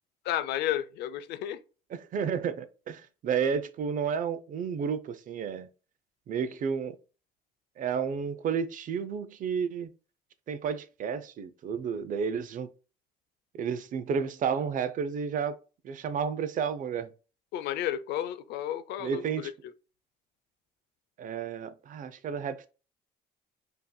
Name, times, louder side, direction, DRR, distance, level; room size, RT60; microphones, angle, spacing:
voice 1, 0.2-1.6 17.5-19.5, left 11 dB, 80° left, 0.5 m, -32 dB
voice 2, 2.1-5.7 6.3-6.9 7.8-9.9 10.5-12.7 13.5-15.5 15.8-17.1 19.0-19.5 21.2-22.7, right 6 dB, 50° right, 0.6 m, -31 dB
5.3 x 2.8 x 2.2 m
cardioid pair, 110°, 17 cm